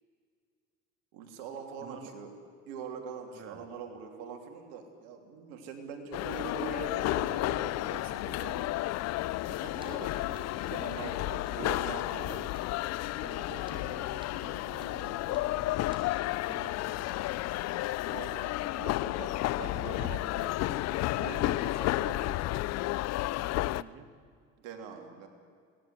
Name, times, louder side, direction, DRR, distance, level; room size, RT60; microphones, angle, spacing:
voice 1, 1.1-2.3 2.7-8.7 9.5-12.4 18.0-22.4 24.6-25.3, right 5 dB, 85° right, 4 dB, 3.4 m, -43 dB
voice 2, 1.8-2.1 3.3-3.7 11.9-12.5 13.2-16.0 16.5-17.0 23.6-24.1, right 6 dB, 45° right, 8 dB, 2.6 m, -50 dB
sound 1, 6.1-23.8, left 17 dB, 60° left, 0.6 m, -32 dB
sound 2, 9.2-17.4, right 1 dB, 15° right, 5.7 m, -58 dB
22.5 x 17.5 x 9.7 m, 2.1 s
supercardioid pair, 85°, 29 cm